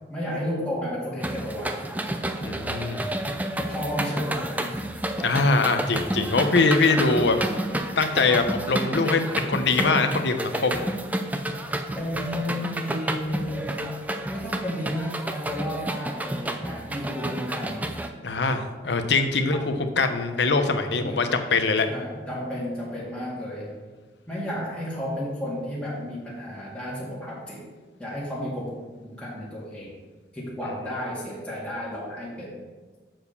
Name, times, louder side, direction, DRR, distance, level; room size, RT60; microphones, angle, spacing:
voice 1, 0.1-1.8 3.5-4.8 11.9-13.9 14.3-17.9 19.4-19.7 21.0-21.3 21.9-23.8 24.3-27.6 28.0-30.0 30.3-32.6, left 1 dB, 5° left, -7 dB, 1.9 m, -32 dB
sound 1, 1.2-18.1, right 1 dB, 10° right, 0.5 m, -30 dB
voice 2, 2.4-3.1 5.2-7.4 8.0-10.8 18.2-21.9, left 3 dB, 80° left, 7 dB, 0.8 m, -23 dB
7.5 x 4.8 x 6.7 m, 1.3 s
head